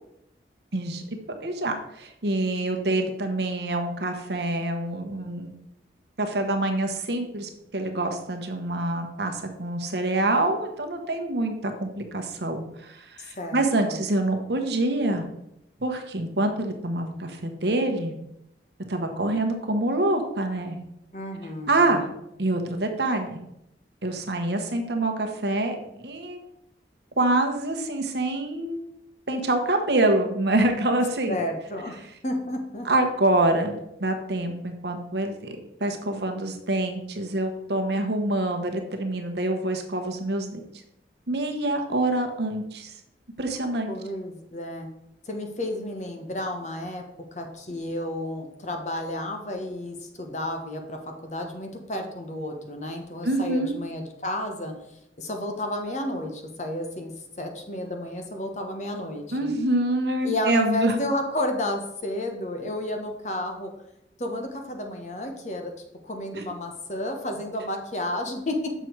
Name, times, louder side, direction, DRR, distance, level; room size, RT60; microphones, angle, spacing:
voice 1, 0.7-1.0 1.4-5.5 6.2-15.3 15.8-18.1 18.9-20.8 21.7-22.0 22.4-23.4 24.0-25.8 26.0-26.4 27.2-28.8 29.3-31.4 32.8-40.6 41.3-43.0 43.4-43.9 53.2-53.7 59.3-61.0 66.3-66.4, right 2 dB, 70° right, 4 dB, 1.1 m, -26 dB
voice 2, 13.3-14.0 21.1-22.1 31.3-32.0 32.2-32.9 43.9-44.9 45.3-47.0 47.3-54.7 55.2-57.1 57.4-59.5 60.2-63.7 64.2-65.7 66.0-68.7, left 1 dB, 40° left, 3 dB, 1.1 m, -31 dB
6.9 x 6.1 x 4.6 m, 0.81 s
head